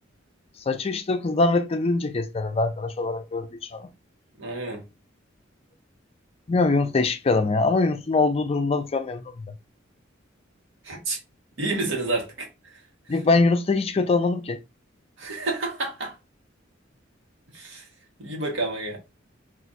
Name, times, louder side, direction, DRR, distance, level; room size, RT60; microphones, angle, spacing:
voice 1, 0.7-3.9 6.5-9.4 13.1-14.6, left 3 dB, 30° left, 0.4 m, -23 dB
voice 2, 4.4-4.8 10.8-11.2 11.6-12.5 15.2-16.1 17.5-17.8 18.2-19.0, right 2 dB, 85° right, 1.2 m, -29 dB
2.5 x 2.4 x 4.0 m
head